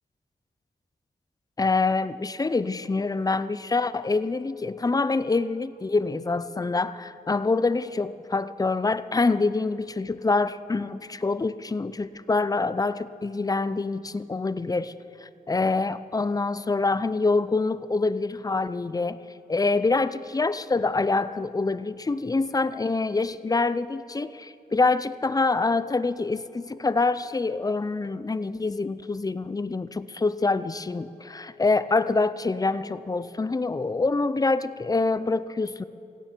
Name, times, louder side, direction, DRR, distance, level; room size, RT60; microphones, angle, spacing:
voice 1, 1.6-14.9 15.2-19.2 19.5-35.8, left 3 dB, 20° left, 15 dB, 0.5 m, -26 dB
16.5 x 16.0 x 4.5 m, 2.8 s
wide cardioid pair, 90°, 17 cm